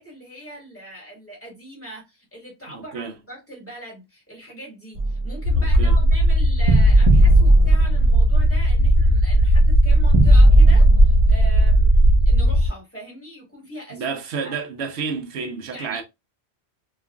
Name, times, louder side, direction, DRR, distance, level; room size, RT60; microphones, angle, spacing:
voice 1, 0.0-14.1 14.4-14.6 15.7-16.0, right 1 dB, 10° left, 1.4 m, -40 dB
voice 2, 2.7-3.1 5.6-6.0 13.9-16.0, right 5 dB, 80° right, 0.9 m, -30 dB
sound 1, 5.0-5.8 6.7-8.4 8.6-8.7 10.1-11.3, right 1 dB, 60° right, 0.3 m, -16 dB
sound 2, 5.4-12.7, right 1 dB, 85° left, 0.9 m, -16 dB
2.9 x 2.4 x 2.3 m
omnidirectional pair, 1.1 m